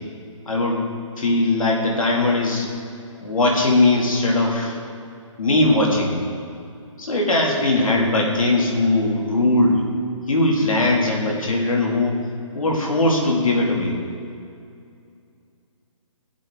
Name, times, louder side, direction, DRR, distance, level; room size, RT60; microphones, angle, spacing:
voice 1, 0.5-0.8 1.2-2.7 3.2-4.8 5.4-6.2 7.0-9.8 10.3-12.2 12.5-14.0, left 2 dB, 90° left, -1 dB, 2.4 m, -19 dB
16.5 x 7.6 x 3.7 m, 2.4 s
hypercardioid pair, 165°, 17 cm